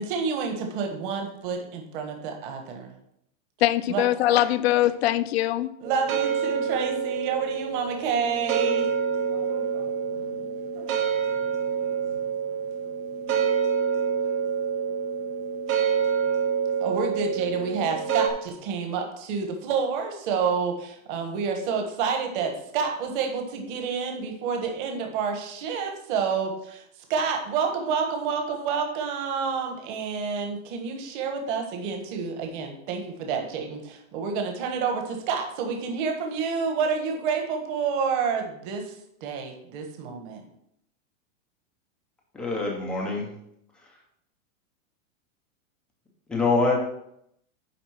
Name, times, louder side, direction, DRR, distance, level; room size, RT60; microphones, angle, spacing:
voice 1, 0.0-2.9 3.9-4.1 5.8-8.9 16.8-26.8 27.1-38.9 39.2-40.4, right 5 dB, 40° right, 1.4 m, -29 dB
voice 2, 3.6-5.7, left 14 dB, 50° left, 0.5 m, -22 dB
sound 1, 5.8-18.3, right 7 dB, 75° right, 1.9 m, -27 dB
voice 3, 42.3-43.3 46.3-46.7, left 3 dB, ahead, 0.4 m, -24 dB
10.0 x 3.9 x 5.9 m
supercardioid pair, 165°, 41 cm